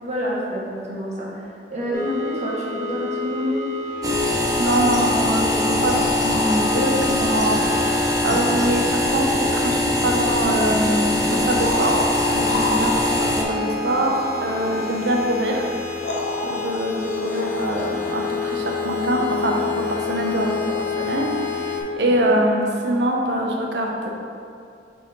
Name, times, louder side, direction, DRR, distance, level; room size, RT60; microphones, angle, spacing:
voice 1, 0.0-2.0 2.3-3.6 8.2-8.5 14.6-14.7 22.2-22.3, equal, 40° right, -6 dB, 1.4 m, -29 dB
sound 1, 1.9-21.8, left 4 dB, 15° left, 1.2 m, -29 dB
sound 2, 4.0-13.4, left 1 dB, 20° right, 0.6 m, -22 dB
voice 2, 4.6-8.0 8.2-15.7 16.4-24.1, right 1 dB, 70° right, 0 dB, 0.8 m, -24 dB
sound 3, 5.7-8.0 9.9-10.0 11.3-13.5 15.4-15.5 16.0-18.2 21.2-21.3, left 1 dB, 75° left, 0.7 m, -30 dB
6.3 x 4.2 x 4.0 m, 2.4 s
head